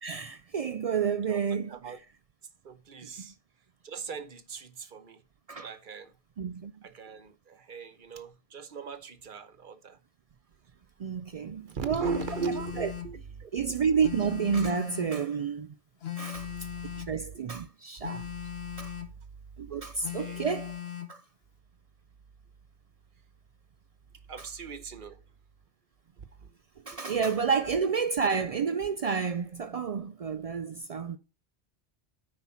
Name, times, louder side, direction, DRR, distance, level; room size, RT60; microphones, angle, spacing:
voice 1, 0.0-1.9 3.0-3.1 5.5-5.7 6.4-6.7 11.0-12.1 12.8-12.9 13.5-15.7 16.2-16.5 17.0-18.2 18.8-18.9 19.6-20.8 21.1-21.2 24.4-24.5 26.9-31.2, right 6 dB, 70° right, 0.3 m, -30 dB
voice 2, 2.6-3.3 3.8-5.2 5.6-6.1 6.8-10.0 11.7-14.1 16.4-17.1 17.3-17.4 18.2-18.3 20.1-20.4 24.3-25.2 26.2-26.5 26.9-27.2, right 5 dB, 50° right, 0.9 m, -39 dB
Telephone, 12.0-13.2 14.0-15.2 16.0-17.2 18.0-19.2 20.0-21.2, left 11 dB, 65° left, 1.1 m, -38 dB
9.6 x 4.3 x 5.7 m
omnidirectional pair, 1.2 m